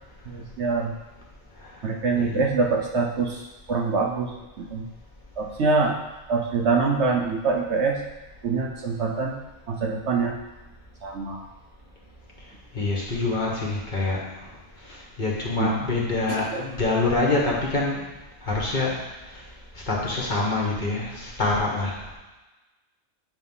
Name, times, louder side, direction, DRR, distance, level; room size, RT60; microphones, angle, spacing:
voice 1, 0.3-0.9 1.8-4.9 5.4-6.0 6.3-8.0 8.4-9.4 9.7-10.4 11.0-11.4 12.8-12.9 15.6-15.8 16.3-16.6, right 4 dB, 60° right, 0 dB, 0.9 m, -25 dB
voice 2, 12.7-14.2 14.8-18.0 18.4-19.0 19.3-19.4 19.7-22.0, left 3 dB, 35° left, -4 dB, 1.4 m, -26 dB
8.1 x 3.1 x 5.5 m, 1.1 s
omnidirectional pair, 1.4 m